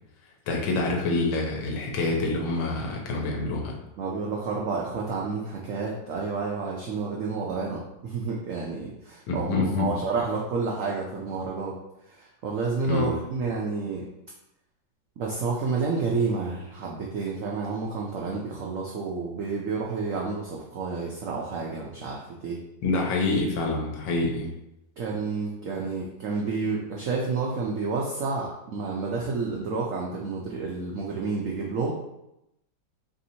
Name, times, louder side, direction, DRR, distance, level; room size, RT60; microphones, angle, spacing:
voice 1, 0.5-3.8 9.3-9.9 12.9-13.1 22.8-24.5, left 2 dB, 90° left, 0 dB, 1.5 m, -26 dB
voice 2, 4.0-11.8 12.1-14.1 15.2-22.6 25.0-31.9, right 4 dB, 90° right, -2 dB, 0.7 m, -30 dB
3.4 x 2.7 x 4.2 m, 0.86 s
omnidirectional pair, 2.0 m